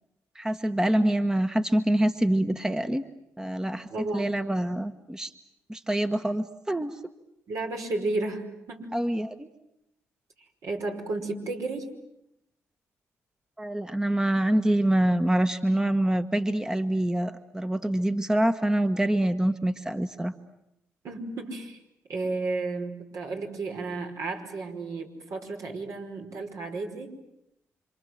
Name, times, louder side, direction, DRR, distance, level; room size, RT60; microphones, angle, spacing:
voice 1, 0.3-3.0 3.4-5.3 5.7-7.0 8.9-9.5 13.6-20.3, right 1 dB, 10° right, 8 dB, 1.3 m, -25 dB
voice 2, 3.9-4.4 7.5-8.9 10.6-11.9 21.0-21.8 22.1-27.1, right 3 dB, 65° right, 2 dB, 5.3 m, -33 dB
28.5 x 26.0 x 7.8 m, 0.84 s
supercardioid pair, 60°, 6 cm